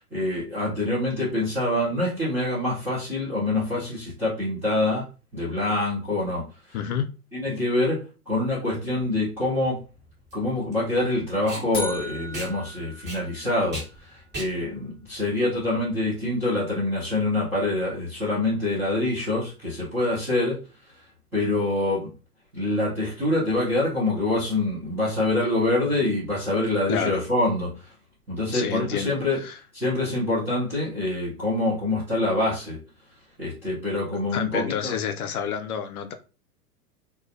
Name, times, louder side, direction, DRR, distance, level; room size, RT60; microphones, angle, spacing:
voice 1, 0.1-5.0 5.3-6.4 7.3-9.8 10.3-20.5 21.3-22.1 22.5-27.9 28.3-29.4 29.7-32.8 33.4-35.0, left 2 dB, 5° right, 0.3 m, -25 dB
voice 2, 6.7-7.1 25.9-26.0 26.9-27.2 28.5-29.6 34.3-36.1, left 7 dB, 70° left, 0.6 m, -29 dB
Packing tape duct tape, 8.8-16.2, right 1 dB, 20° right, 1.0 m, -40 dB
sound 1, 11.7-13.9, left 2 dB, 20° left, 0.7 m, -37 dB
2.2 x 2.1 x 2.6 m
hypercardioid pair, 110°, 46 cm